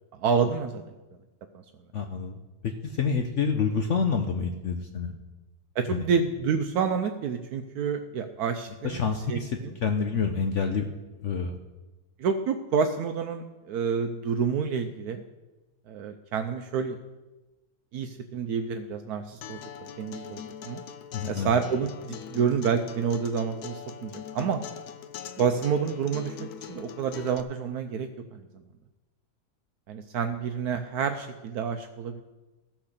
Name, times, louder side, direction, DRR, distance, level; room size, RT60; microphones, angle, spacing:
voice 1, 0.1-0.8 5.8-9.0 9.3-9.8 12.2-15.2 15.9-17.0 17.9-19.6 20.0-20.8 21.2-24.6 25.4-28.4 29.9-32.2, right 6 dB, 75° right, 7 dB, 1.1 m, -28 dB
voice 2, 1.9-2.4 2.6-5.1 5.9-6.0 8.8-10.9 11.2-11.6 21.1-21.5, left 5 dB, 55° left, 5 dB, 1.0 m, -28 dB
Acoustic guitar, 19.4-27.4, left 9 dB, 80° left, 1.2 m, -42 dB
15.0 x 6.0 x 6.6 m, 1.1 s
omnidirectional pair, 1.7 m